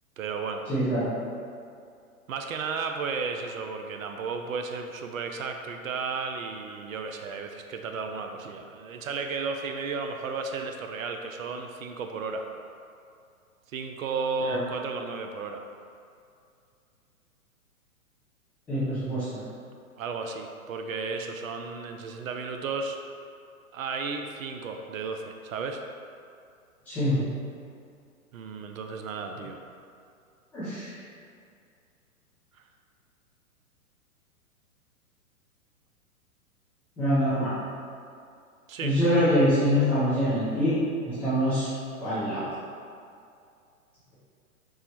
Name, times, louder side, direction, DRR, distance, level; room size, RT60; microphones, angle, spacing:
voice 1, 0.2-0.6 2.3-12.5 13.7-15.6 20.0-23.0 23.7-25.8 28.3-29.6 38.7-39.0, right 4 dB, 65° right, 4 dB, 0.5 m, -33 dB
voice 2, 0.7-1.2 14.4-14.6 18.7-19.4 26.9-27.2 30.5-31.0 37.0-37.5 38.8-40.8 41.0-41.7 42.0-42.4, equal, 5° left, -18 dB, 0.3 m, -25 dB
4.4 x 2.1 x 4.4 m, 2.4 s
figure-of-eight pair, 120°, 44 cm